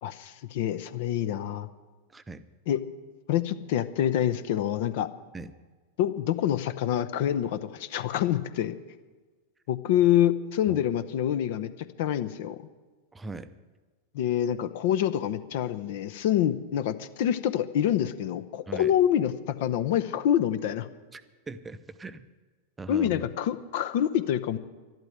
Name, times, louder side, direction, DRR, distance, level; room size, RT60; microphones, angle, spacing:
voice 1, 0.0-1.7 2.7-2.8 3.3-5.1 6.0-8.8 9.7-11.7 12.0-12.6 14.1-20.9 22.9-24.6, left 11 dB, 50° left, 13 dB, 0.7 m, -26 dB
voice 2, 2.1-2.4 5.3-5.5 10.7-10.8 13.1-13.5 18.7-18.9 21.1-22.3 22.8-23.3, right 3 dB, 15° right, 12 dB, 0.7 m, -40 dB
12.0 x 12.0 x 8.0 m, 1.3 s
figure-of-eight pair, 90°, 0 cm